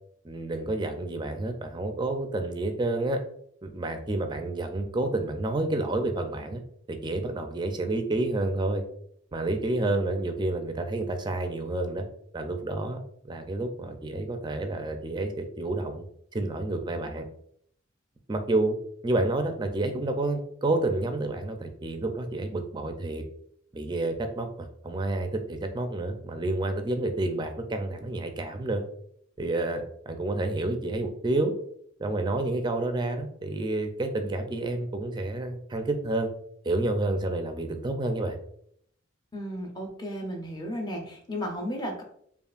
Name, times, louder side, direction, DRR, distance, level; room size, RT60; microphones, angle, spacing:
voice 1, 0.2-3.2 3.6-6.6 6.9-8.8 9.3-12.1 12.3-13.0 13.3-16.1 16.3-17.3 18.3-18.8 19.0-23.2 23.7-28.8 29.4-31.5 32.0-36.3 36.6-38.4, right 2 dB, 20° right, 6 dB, 0.4 m, -29 dB
voice 2, 39.3-42.0, equal, 20° left, 1 dB, 0.7 m, -34 dB
5.3 x 2.5 x 2.4 m, 0.67 s
head